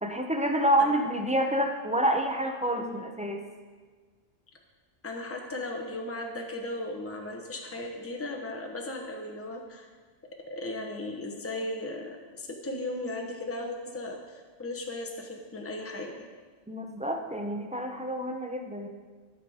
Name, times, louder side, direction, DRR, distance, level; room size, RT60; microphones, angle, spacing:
voice 1, 0.0-3.4 16.7-18.9, right 1 dB, 10° right, 3 dB, 0.5 m, -28 dB
voice 2, 5.0-9.9 10.4-16.3, left 2 dB, 15° left, 2 dB, 0.9 m, -36 dB
12.5 x 5.9 x 4.9 m, 1.5 s
omnidirectional pair, 1.2 m